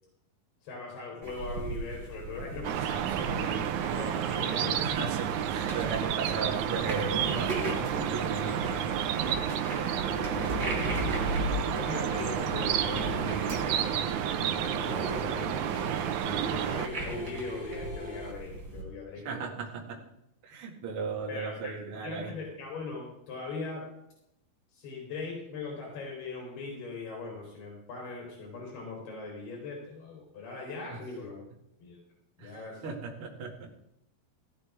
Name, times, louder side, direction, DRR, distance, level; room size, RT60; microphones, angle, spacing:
voice 1, 0.6-4.7 9.3-11.2 11.7-19.6 21.3-21.7 22.0-23.9 24.7-31.4 31.8-32.0 32.4-32.9, left 3 dB, 85° left, -2 dB, 5.5 m, -40 dB
sound 1, 1.2-18.8, right 1 dB, 25° right, 4.0 m, -38 dB
sound 2, 2.6-16.9, right 10 dB, 80° right, 1.8 m, -31 dB
voice 2, 4.2-8.7 19.2-20.0 20.4-22.4 30.9-31.0 32.4-33.7, right 5 dB, 40° right, 0 dB, 2.5 m, -37 dB
sound 3, 5.6-18.3, left 1 dB, 20° left, 1.6 m, -44 dB
17.0 x 13.0 x 3.5 m, 0.81 s
omnidirectional pair, 4.4 m